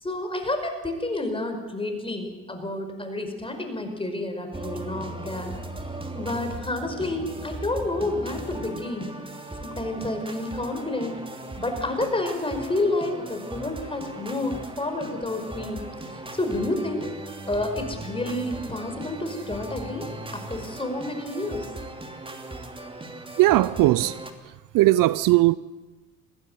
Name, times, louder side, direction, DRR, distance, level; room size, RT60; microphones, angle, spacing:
voice 1, 0.0-5.5 6.1-9.2 9.6-11.2 11.6-15.9 16.3-17.1 17.5-20.1 20.3-21.7, left 2 dB, 15° left, 5.2 m, -29 dB
sound 1, 4.5-24.3, right 2 dB, 15° right, 2.9 m, -38 dB
voice 2, 23.4-24.1 24.7-25.6, right 17 dB, 60° right, 0.6 m, -18 dB
21.0 x 15.0 x 9.3 m
supercardioid pair, 80°, 39 cm